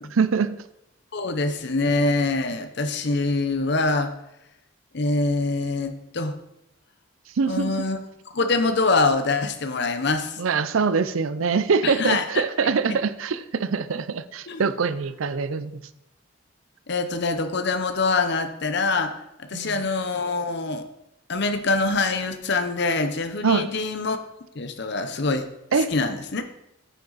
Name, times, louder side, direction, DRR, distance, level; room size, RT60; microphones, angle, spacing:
voice 1, 0.2-0.6 7.4-7.7 10.4-15.8 19.5-19.9 23.4-23.7 25.7-25.9, right 5 dB, 85° right, 14 dB, 0.5 m, -24 dB
voice 2, 1.1-4.1 4.9-6.3 7.5-8.0 8.3-10.4 11.8-12.4 12.9-13.0 14.5-14.6 16.9-19.1 19.4-20.9 21.3-24.2 24.5-25.5 25.8-26.4, left 3 dB, 55° left, 8 dB, 0.8 m, -24 dB
9.1 x 7.5 x 4.0 m, 0.86 s
head